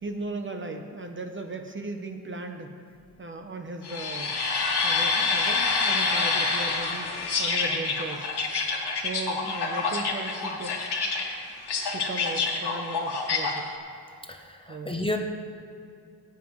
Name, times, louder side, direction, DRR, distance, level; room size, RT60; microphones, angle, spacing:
voice 1, 0.0-2.8 3.2-4.4 4.8-7.1 7.4-8.3 9.0-10.8 11.9-13.7 14.7-15.2, right 2 dB, 30° right, 4 dB, 0.7 m, -37 dB
sound 1, 3.8-13.6, left 4 dB, 85° left, 1.7 m, -27 dB
voice 2, 14.3-15.2, left 1 dB, 15° left, 2 dB, 0.7 m, -31 dB
18.0 x 9.3 x 3.1 m, 2.4 s
wide cardioid pair, 165°, 39 cm